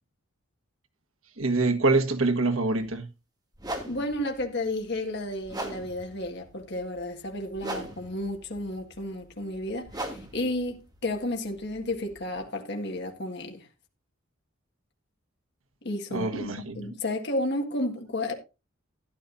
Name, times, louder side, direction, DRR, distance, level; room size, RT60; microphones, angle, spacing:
voice 1, 1.4-3.1 16.1-17.0, right 3 dB, 80° right, 1.6 m, -25 dB
sound 1, 2.8-2.9 3.6-12.4, right 1 dB, 20° right, 2.4 m, -41 dB
voice 2, 3.9-13.7 15.8-18.3, left 1 dB, 55° left, 1.8 m, -32 dB
13.0 x 11.0 x 2.6 m
head